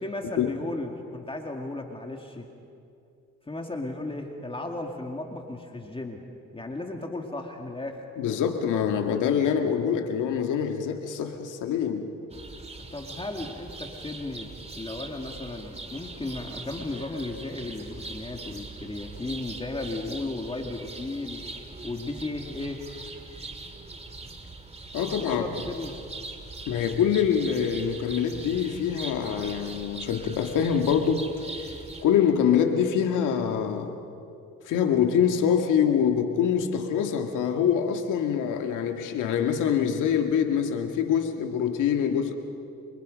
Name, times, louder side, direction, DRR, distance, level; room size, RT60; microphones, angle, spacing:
voice 1, 0.0-2.5 3.5-6.3 6.5-8.0 12.9-21.4 21.8-22.9 25.0-25.9, left 2 dB, 20° left, 3 dB, 2.1 m, -35 dB
voice 2, 8.2-12.1 24.9-25.4 26.7-31.3 32.0-34.0 34.7-42.4, left 8 dB, 90° left, 5 dB, 1.9 m, -25 dB
sound 1, 12.3-32.0, right 3 dB, 20° right, 2.3 m, -41 dB
28.5 x 24.5 x 5.2 m, 2.6 s
cardioid pair, 90°, 30 cm